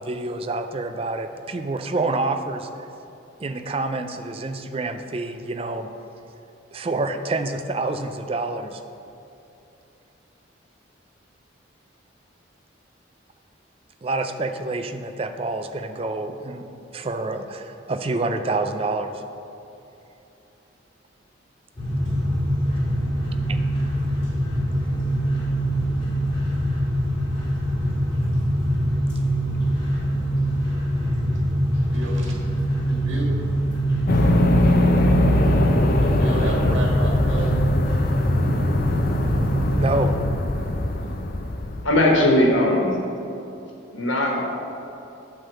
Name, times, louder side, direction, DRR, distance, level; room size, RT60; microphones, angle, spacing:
voice 1, 0.0-2.9 3.4-5.9 6.7-8.8 14.0-19.2 23.5-23.6 39.7-40.2, right 2 dB, 30° right, 8 dB, 0.4 m, -27 dB
sound 1, 21.8-40.1, equal, 30° left, 1.9 m, -23 dB
voice 2, 31.9-32.3 32.8-33.7 36.0-37.5 40.6-41.2, right 1 dB, 85° right, -3 dB, 1.6 m, -32 dB
sound 2, 34.1-41.8, left 1 dB, 45° left, 0.5 m, -21 dB
voice 3, 41.8-43.0 43.9-44.4, left 1 dB, 90° left, 0 dB, 1.4 m, -19 dB
8.7 x 3.6 x 6.9 m, 2.9 s
head